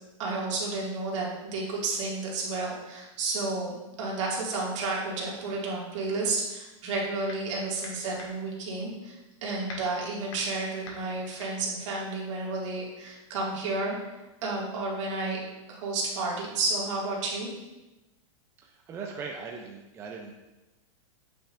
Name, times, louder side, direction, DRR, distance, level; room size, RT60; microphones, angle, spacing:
voice 1, 0.2-15.4 15.7-17.5, right 3 dB, 60° right, -3 dB, 2.0 m, -31 dB
sound 1, 6.8-7.5 7.8-12.8, left 3 dB, 65° left, 1.9 m, -46 dB
voice 2, 18.6-20.3, right 5 dB, 15° right, 1 dB, 0.4 m, -39 dB
8.6 x 5.7 x 2.5 m, 1.1 s
supercardioid pair, 155°, 17 cm